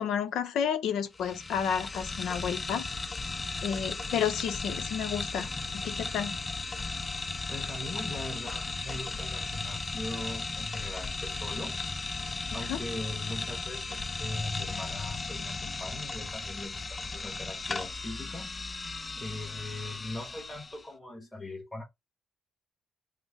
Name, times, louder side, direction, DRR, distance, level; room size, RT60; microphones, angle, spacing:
voice 1, 0.0-2.9 3.6-5.5 5.7-6.3 12.5-12.8, left 8 dB, 80° left, 0.7 m, -31 dB
sound 1, 1.1-20.8, left 3 dB, 25° left, 0.5 m, -36 dB
voice 2, 7.5-11.8 12.5-18.6 19.2-21.8, left 2 dB, 10° left, 1.3 m, -40 dB
3.4 x 2.1 x 3.5 m
cardioid pair, 90°, 0 cm